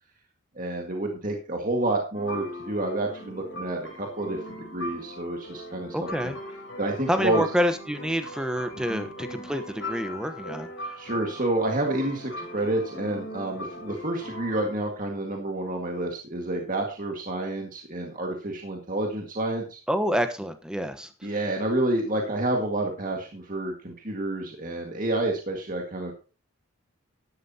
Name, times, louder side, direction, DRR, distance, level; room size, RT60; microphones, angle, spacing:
voice 1, 0.6-6.3 6.8-7.4 8.9-9.0 11.0-19.8 21.2-26.1, right 1 dB, 40° right, 1 dB, 1.8 m, -29 dB
sound 1, 2.1-14.7, equal, 65° left, 4.0 m, -39 dB
voice 2, 5.9-6.4 7.1-11.0 19.9-21.1, equal, 5° right, 8 dB, 1.0 m, -28 dB
13.0 x 11.5 x 2.8 m, 0.34 s
head